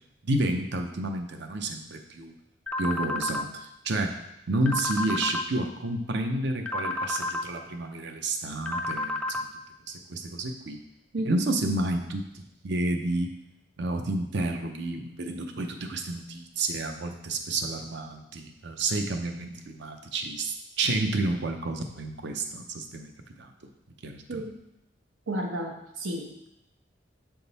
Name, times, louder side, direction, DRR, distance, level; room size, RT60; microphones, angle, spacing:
voice 1, 0.2-2.3 2.8-4.2 4.5-9.5 9.9-10.8 11.3-13.3 13.8-23.1 23.4-23.5 24.0-24.4, right 2 dB, 60° right, 5 dB, 0.6 m, -30 dB
sound 1, 2.7-3.4 4.7-5.4 6.7-7.4 8.7-9.4, left 2 dB, 5° left, 0.3 m, -30 dB
voice 2, 25.3-26.5, right 1 dB, 90° right, 1 dB, 1.0 m, -32 dB
6.8 x 3.6 x 4.1 m, 0.85 s
head